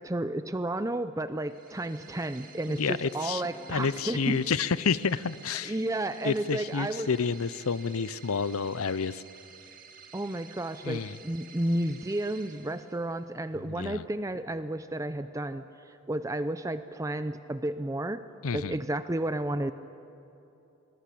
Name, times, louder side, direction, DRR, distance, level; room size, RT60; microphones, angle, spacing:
voice 1, 0.0-4.4 5.6-7.1 10.1-18.2 18.5-19.7, right 1 dB, 15° right, 11 dB, 0.5 m, -32 dB
sound 1, 1.4-13.3, right 6 dB, 40° right, 2.0 m, -52 dB
voice 2, 2.7-3.4 3.7-5.7 6.2-9.2 10.8-11.2 13.7-14.0 18.4-18.8, left 5 dB, 90° left, 17 dB, 0.7 m, -29 dB
Piano, 2.7-10.8, left 1 dB, 25° left, 1.9 m, -55 dB
25.0 x 19.5 x 8.5 m, 2.9 s
head